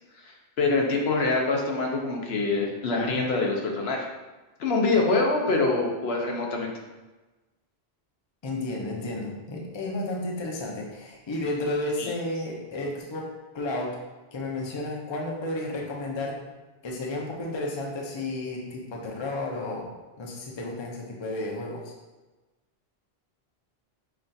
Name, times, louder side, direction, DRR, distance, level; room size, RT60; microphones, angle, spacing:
voice 1, 0.3-4.1 4.6-6.7 12.0-12.1, left 3 dB, 80° left, 0 dB, 0.9 m, -25 dB
voice 2, 8.4-13.3 13.5-13.9 14.3-16.4 16.8-21.9, left 2 dB, 35° left, -1 dB, 0.5 m, -32 dB
5.8 x 2.4 x 2.6 m, 1.2 s
omnidirectional pair, 1.1 m